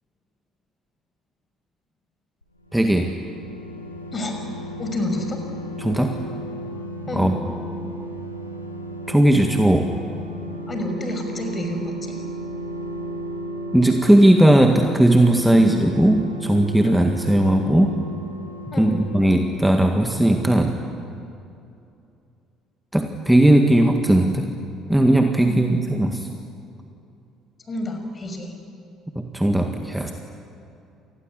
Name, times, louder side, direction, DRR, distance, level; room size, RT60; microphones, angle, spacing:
sound 1, 2.4-20.9 21.2-21.3, equal, 90° left, 2.0 m, -34 dB
voice 1, 2.7-3.1 5.8-6.2 7.1-7.4 9.1-9.9 13.7-18.0 18.8-20.8 22.9-24.5 24.9-26.3 29.2-30.1, right 1 dB, 5° right, 4 dB, 1.8 m, -17 dB
voice 2, 4.8-5.4 7.1-7.3 10.7-12.2 15.5-15.8 18.7-19.0 25.4-25.9 27.7-28.5 30.0-30.1, left 1 dB, 30° left, 5 dB, 6.0 m, -29 dB
28.0 x 20.0 x 10.0 m, 2.6 s
figure-of-eight pair, 55°, 0 cm